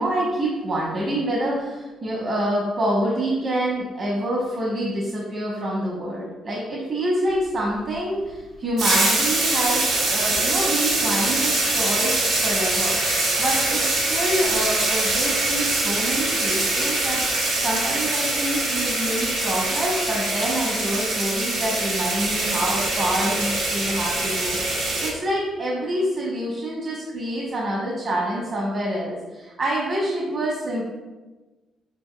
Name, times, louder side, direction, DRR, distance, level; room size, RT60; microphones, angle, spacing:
voice 1, 0.0-12.1 12.4-13.0 13.4-17.2 17.6-30.8, right 1 dB, 50° right, -4 dB, 1.0 m, -26 dB
sound 1, 8.8-25.1, right 2 dB, 85° right, 1.1 m, -23 dB
5.2 x 4.3 x 2.3 m, 1.2 s
cardioid pair, 90°, 0 cm